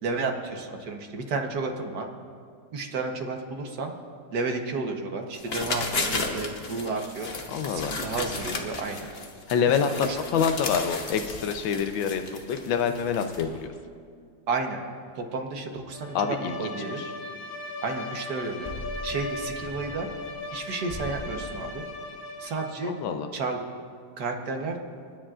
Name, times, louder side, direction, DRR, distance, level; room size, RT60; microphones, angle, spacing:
voice 1, 0.0-2.1 2.7-3.9 4.3-7.3 7.7-9.1 9.6-10.2 14.5-14.8 15.1-17.0 17.8-18.7 19.0-20.1 20.5-21.8 22.4-22.9 23.3-23.6 24.2-24.8, right 3 dB, 60° right, 3 dB, 1.6 m, -32 dB
sound 1, 5.3-13.6, left 3 dB, 40° left, 1.0 m, -34 dB
voice 2, 7.5-7.9 9.5-12.2 12.5-13.7 16.1-16.6 17.0-17.1 22.8-23.3, left 7 dB, 85° left, 7 dB, 1.5 m, -26 dB
Bowed string instrument, 15.9-23.0, left 2 dB, 60° left, 1.3 m, -38 dB
sound 2, 18.5-20.6 20.9-21.6, equal, 15° left, 4.2 m, -41 dB
30.0 x 10.0 x 2.5 m, 2.1 s
omnidirectional pair, 2.0 m